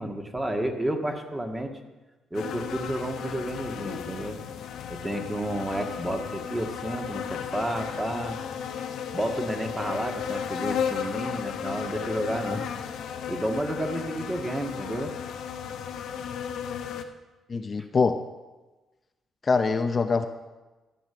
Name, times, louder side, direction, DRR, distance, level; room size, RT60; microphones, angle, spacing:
voice 1, 0.0-1.7 2.3-4.4 4.9-8.4 9.1-12.7 13.3-15.1, right 1 dB, 15° right, 4 dB, 1.7 m, -31 dB
sound 1, 2.3-17.0, left 8 dB, 75° left, 1.0 m, -34 dB
voice 2, 17.5-18.2 19.4-20.3, left 4 dB, 35° left, 7 dB, 0.7 m, -24 dB
13.5 x 8.0 x 6.9 m, 1.1 s
cardioid pair, 90°, 0 cm